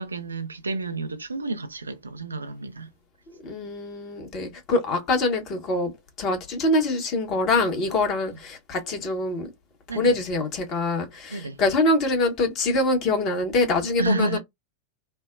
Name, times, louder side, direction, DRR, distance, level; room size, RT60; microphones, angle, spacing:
voice 1, 0.0-2.9 9.9-10.1 11.3-11.6 14.0-14.4, right 2 dB, 75° right, 0.4 m, -30 dB
voice 2, 3.4-9.5 9.9-14.4, left 2 dB, 35° left, 1.1 m, -24 dB
3.2 x 2.1 x 2.2 m
figure-of-eight pair, 90°, 0 cm